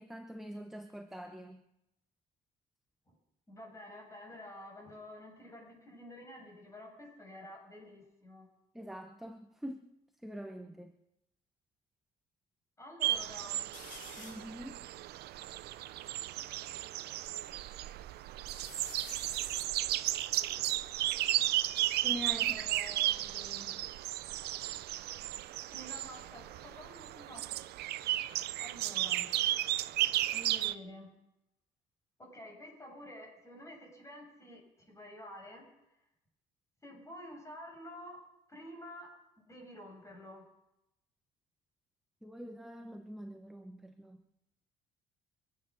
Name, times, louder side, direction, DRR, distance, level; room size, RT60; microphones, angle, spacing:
voice 1, 0.0-1.6 8.7-9.8 10.2-10.9 14.2-14.8 22.0-22.6 42.2-44.2, equal, ahead, 6 dB, 1.0 m, -44 dB
voice 2, 3.5-8.5 12.8-13.6 22.3-23.8 25.7-27.5 28.6-29.3 30.3-31.1 32.2-35.7 36.8-38.2 38.5-39.1 39.4-40.5, left 1 dB, 15° left, -1 dB, 7.5 m, -50 dB
sound 1, 13.0-30.7, right 14 dB, 75° right, 0.6 m, -34 dB
sound 2, 13.7-14.6 15.1-15.2 15.4-17.0 17.5-18.1 18.5-21.8 22.8-24.7 24.9-25.4 27.0-29.6 30.0-30.8, left 5 dB, 55° left, 4.6 m, -56 dB
24.0 x 9.2 x 6.3 m, 0.87 s
cardioid pair, 110°, 17 cm